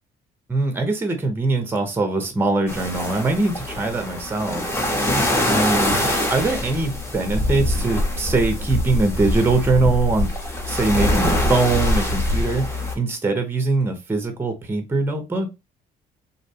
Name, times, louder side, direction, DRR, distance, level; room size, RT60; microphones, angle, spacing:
voice 1, 0.5-5.2 5.5-10.3 10.7-15.5, right 3 dB, 15° right, 6 dB, 0.6 m, -22 dB
sound 1, 2.7-12.9, left 1 dB, 15° left, 0.8 m, -23 dB
2.6 x 2.1 x 2.7 m, 0.25 s
cardioid pair, 110°, 17 cm